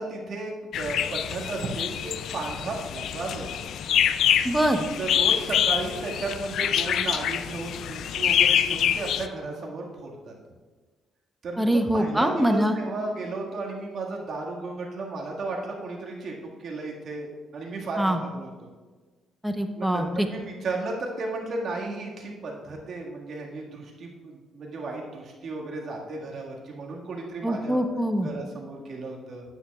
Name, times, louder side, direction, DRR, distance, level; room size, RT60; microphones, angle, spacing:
voice 1, 0.0-3.7 5.0-10.3 11.4-18.5 19.8-27.8 28.2-29.4, right 3 dB, 60° right, -1 dB, 1.8 m, -34 dB
sound 1, 0.7-9.3, left 9 dB, 75° left, 0.3 m, -26 dB
voice 2, 4.4-4.9 11.6-12.7 18.0-18.2 19.4-20.3 27.4-28.3, equal, 5° right, 6 dB, 0.8 m, -24 dB
9.7 x 9.0 x 2.4 m, 1.4 s
cardioid pair, 90°, 0 cm